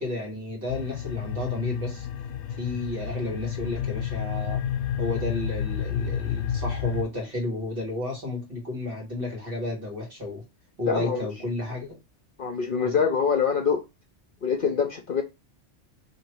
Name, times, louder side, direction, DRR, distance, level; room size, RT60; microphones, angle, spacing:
voice 1, 0.0-2.1 2.6-4.6 5.0-10.4 10.8-12.0, left 2 dB, 50° right, 1.9 m, -32 dB
sound 1, 0.7-7.0, left 9 dB, 75° left, 0.9 m, -30 dB
voice 2, 10.9-11.2 12.4-13.8 14.4-15.2, left 6 dB, 55° left, 0.7 m, -24 dB
3.0 x 2.9 x 4.4 m
omnidirectional pair, 1.2 m